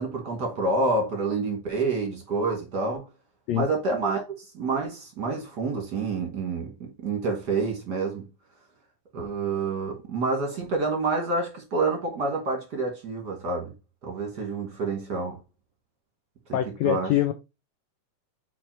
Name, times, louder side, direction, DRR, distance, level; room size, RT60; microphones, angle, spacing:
voice 1, 0.0-3.0 3.5-4.3 4.5-8.2 9.1-13.7 14.0-15.4 16.5-16.6 16.8-17.1, right 3 dB, 45° right, 1.5 m, -28 dB
voice 2, 16.5-17.3, left 14 dB, 85° left, 1.5 m, -24 dB
5.5 x 4.5 x 4.5 m
omnidirectional pair, 3.7 m